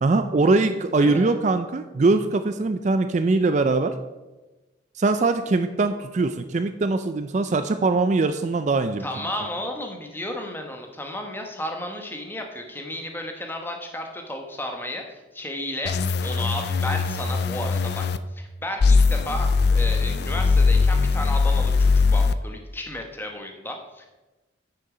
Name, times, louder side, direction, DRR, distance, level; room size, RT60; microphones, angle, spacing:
voice 1, 0.0-3.9 5.0-9.3, right 3 dB, 40° right, 9 dB, 0.4 m, -22 dB
voice 2, 1.0-1.3 9.0-18.1 18.3-24.1, left 1 dB, 10° left, 3 dB, 1.1 m, -33 dB
sound 1, 15.8-18.2 18.8-22.3, left 4 dB, 55° left, 0.4 m, -20 dB
9.4 x 6.6 x 4.9 m, 1.1 s
head